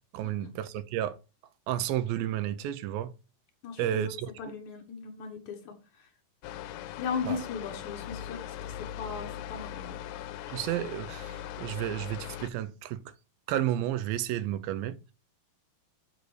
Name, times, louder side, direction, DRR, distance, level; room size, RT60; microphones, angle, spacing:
voice 1, 0.1-1.2 1.7-3.1 3.8-4.3 7.2-7.4 10.5-13.0 13.5-15.0, right 12 dB, 85° right, 2.5 m, -31 dB
voice 2, 3.6-4.0 4.4-5.7 6.0-6.1 7.0-8.4 8.6-10.0, left 6 dB, 65° left, 2.5 m, -37 dB
sound 1, 6.4-12.5, left 11 dB, 80° left, 2.1 m, -40 dB
7.7 x 4.0 x 6.4 m
omnidirectional pair, 4.1 m